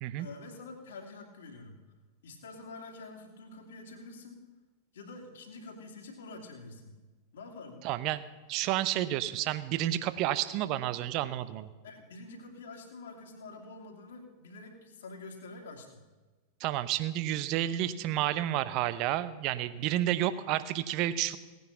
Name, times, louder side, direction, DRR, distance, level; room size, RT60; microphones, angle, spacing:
voice 1, 0.2-1.8 2.2-4.4 4.9-7.0 7.3-7.9 11.8-16.0 19.9-20.1, left 3 dB, 60° left, 3 dB, 2.5 m, -47 dB
voice 2, 7.8-11.7 16.6-21.4, right 13 dB, 40° right, 15 dB, 0.7 m, -30 dB
17.5 x 9.5 x 5.8 m, 1.2 s
figure-of-eight pair, 90°, 0 cm